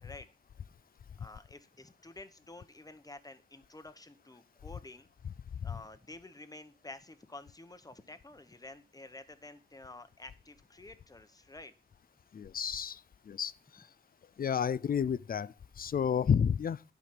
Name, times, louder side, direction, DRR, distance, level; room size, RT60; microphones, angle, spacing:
voice 1, 1.2-5.1 5.6-11.7, left 2 dB, 20° left, 1.0 m, -50 dB
voice 2, 12.3-13.9 14.4-16.8, left 7 dB, 50° left, 0.4 m, -31 dB
11.5 x 5.1 x 5.9 m
wide cardioid pair, 105°, 20 cm